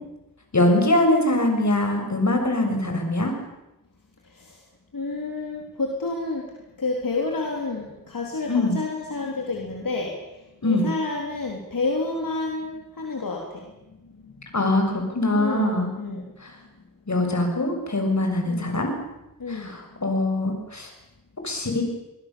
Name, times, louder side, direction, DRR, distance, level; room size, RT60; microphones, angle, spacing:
voice 1, 0.5-3.3 8.5-8.8 10.6-10.9 14.5-15.9 16.4-16.5 17.1-18.9 19.5-20.9 21.4-21.8, left 1 dB, 55° left, 3 dB, 6.7 m, -22 dB
voice 2, 4.9-6.4 6.8-10.1 10.6-13.7 14.0-14.5 15.3-16.3 18.5-18.8 19.4-19.8, left 3 dB, 75° left, 0 dB, 3.8 m, -29 dB
25.5 x 21.5 x 7.1 m, 0.94 s
wide cardioid pair, 55°, 33 cm